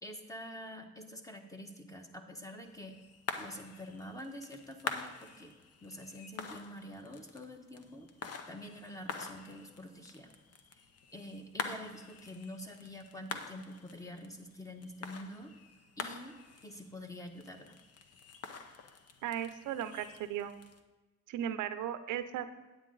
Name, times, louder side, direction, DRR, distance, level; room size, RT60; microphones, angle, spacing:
voice 1, 0.0-3.0 3.4-5.5 5.8-8.1 8.5-10.3 10.7-10.8 11.1-15.5 16.0-16.4 16.6-17.8, left 1 dB, 10° left, 4 dB, 1.2 m, -47 dB
sound 1, 2.6-20.8, left 5 dB, 55° left, 0.9 m, -46 dB
voice 2, 19.2-20.5 21.3-22.5, right 10 dB, 85° right, 11 dB, 0.7 m, -36 dB
9.2 x 8.7 x 3.9 m, 1.2 s
cardioid pair, 90°, 30 cm